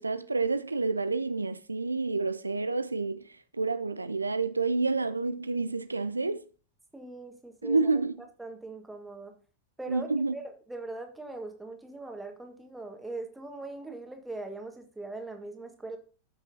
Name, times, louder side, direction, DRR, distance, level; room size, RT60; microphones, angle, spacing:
voice 1, 0.0-3.3 3.5-6.4 7.6-8.1 9.9-10.4, right 3 dB, 80° right, 0.4 m, -29 dB
voice 2, 6.9-7.9 8.4-9.3 9.8-16.0, right 2 dB, 5° right, 1.6 m, -41 dB
14.0 x 5.9 x 2.7 m
figure-of-eight pair, 90°, 0 cm